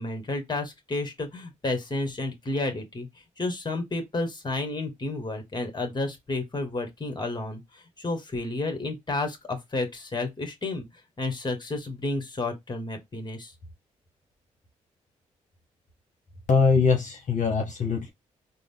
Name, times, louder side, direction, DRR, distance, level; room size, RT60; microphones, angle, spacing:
voice 1, 0.0-3.1 3.4-10.8 11.2-13.5, left 2 dB, 30° left, 1.5 m, -31 dB
voice 2, 16.5-18.1, left 5 dB, 55° left, 1.1 m, -22 dB
3.7 x 2.2 x 3.5 m
supercardioid pair, 50°, 15 cm